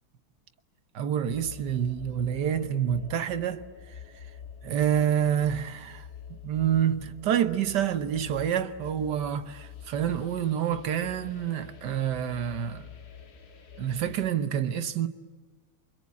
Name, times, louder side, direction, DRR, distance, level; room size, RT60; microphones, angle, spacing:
voice 1, 0.9-3.6 4.6-12.9 13.8-15.1, right 9 dB, 60° right, 1.6 m, -28 dB
sound 1, 1.3-14.3, left 7 dB, 50° left, 1.9 m, -47 dB
28.5 x 24.5 x 8.4 m
omnidirectional pair, 2.2 m